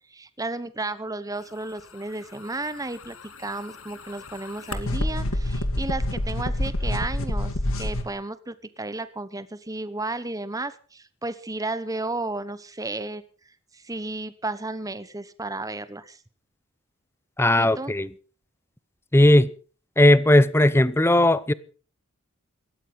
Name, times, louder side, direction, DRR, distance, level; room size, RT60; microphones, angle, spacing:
voice 1, 0.0-7.5 7.8-13.2 13.7-16.2 17.6-17.9, right 2 dB, 15° right, 1.1 m, -33 dB
sound 1, 2.9-8.0, left 1 dB, 70° left, 2.1 m, -28 dB
voice 2, 17.4-18.1 19.1-19.5 20.0-21.5, left 1 dB, 10° left, 0.7 m, -17 dB
17.5 x 13.5 x 5.6 m
head